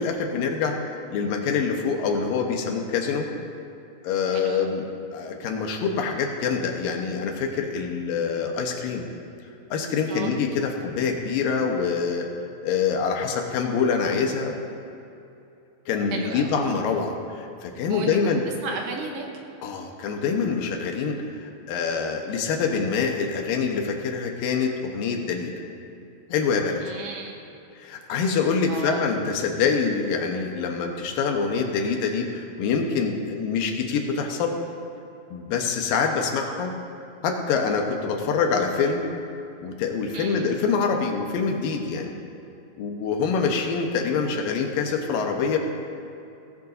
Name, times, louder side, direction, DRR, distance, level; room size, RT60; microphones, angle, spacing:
voice 1, 0.0-3.3 4.0-4.9 5.1-9.1 9.7-12.3 12.6-14.5 15.9-18.4 19.6-25.5 26.3-26.8 27.8-34.5 35.3-36.7 37.2-39.0 39.6-42.1 42.8-45.6, left 5 dB, 70° left, 2 dB, 2.7 m, -25 dB
voice 2, 16.1-16.5 17.9-18.4 18.6-19.3 26.8-27.4 28.7-29.1 40.1-40.6, right 4 dB, 70° right, 1 dB, 2.6 m, -34 dB
18.0 x 17.5 x 2.7 m, 2.7 s
omnidirectional pair, 4.5 m